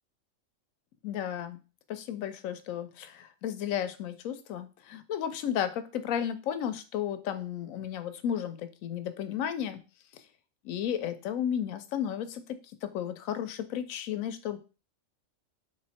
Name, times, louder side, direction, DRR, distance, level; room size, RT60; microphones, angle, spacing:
voice 1, 1.0-1.6 1.9-9.8 10.6-14.6, left 9 dB, 85° left, 11 dB, 1.0 m, -33 dB
3.5 x 3.1 x 4.1 m, 0.33 s
omnidirectional pair, 1.4 m